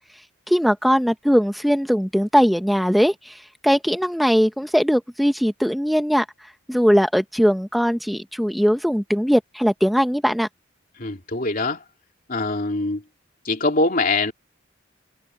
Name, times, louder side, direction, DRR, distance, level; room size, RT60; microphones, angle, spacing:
voice 1, 0.5-6.2 6.7-10.5, equal, ahead, 0.7 m, -20 dB
voice 2, 11.0-11.8 12.3-13.0 13.4-14.3, left 3 dB, 45° left, 2.8 m, -23 dB
head